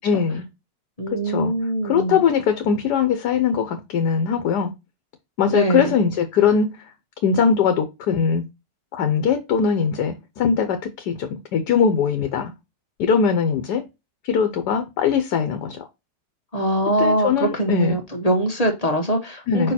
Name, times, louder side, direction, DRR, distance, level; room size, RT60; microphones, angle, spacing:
voice 1, 0.0-0.5 1.1-1.5 1.8-4.7 5.4-6.7 7.2-8.4 8.9-12.5 13.0-13.8 14.2-15.8 17.0-18.0 19.5-19.7, left 6 dB, 70° left, 1.3 m, -21 dB
voice 2, 1.0-2.2 5.5-6.0 16.5-19.7, right 1 dB, 30° left, 0.9 m, -22 dB
5.2 x 4.6 x 4.2 m
omnidirectional pair, 1.9 m